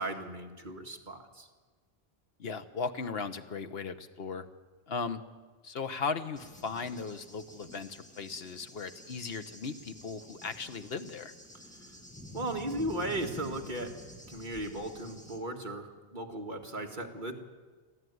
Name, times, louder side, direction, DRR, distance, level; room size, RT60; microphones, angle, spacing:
voice 1, 0.0-1.5 12.3-13.9 14.3-17.3, right 1 dB, 50° right, 2 dB, 2.0 m, -36 dB
voice 2, 2.4-4.5 4.9-5.2 5.6-11.3, left 5 dB, 70° left, 10 dB, 1.2 m, -37 dB
Cricket / Thunder, 6.4-15.4, left 1 dB, 5° left, 2.2 m, -49 dB
22.5 x 15.0 x 9.4 m, 1.4 s
omnidirectional pair, 1.1 m